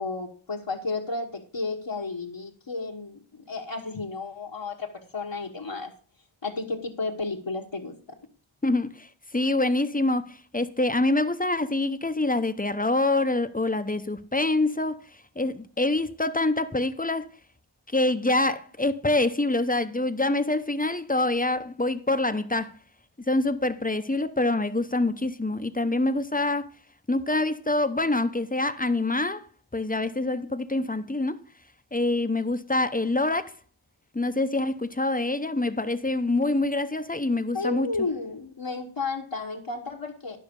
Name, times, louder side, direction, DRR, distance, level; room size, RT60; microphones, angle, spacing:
voice 1, 0.0-5.9 6.4-8.2 37.5-40.4, left 3 dB, 70° left, 1.4 m, -32 dB
voice 2, 8.6-9.1 9.3-15.0 15.4-17.3 17.9-22.7 23.3-26.7 27.1-29.5 29.7-31.4 31.9-33.5 34.1-37.9, left 2 dB, 20° left, 0.8 m, -25 dB
12.5 x 6.0 x 5.3 m
wide cardioid pair, 45°, 47 cm